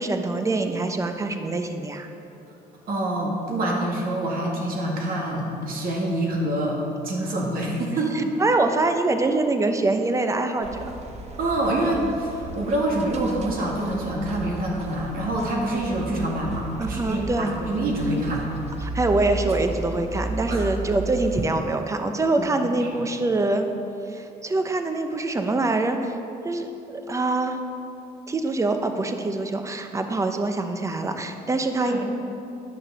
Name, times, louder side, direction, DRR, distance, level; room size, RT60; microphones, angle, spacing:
voice 1, 0.0-2.1 8.1-10.8 16.8-17.5 18.8-23.7 24.1-26.2 26.4-27.6 28.3-32.0, right 2 dB, 20° right, 6 dB, 0.8 m, -24 dB
voice 2, 2.9-8.3 11.4-18.5 20.5-20.6 22.6-23.0 31.8-32.0, right 1 dB, 60° right, -1 dB, 2.1 m, -26 dB
sound 1, 10.6-21.5, right 2 dB, 40° right, 1.0 m, -34 dB
9.9 x 6.2 x 6.2 m, 2.8 s
cardioid pair, 110°, 17 cm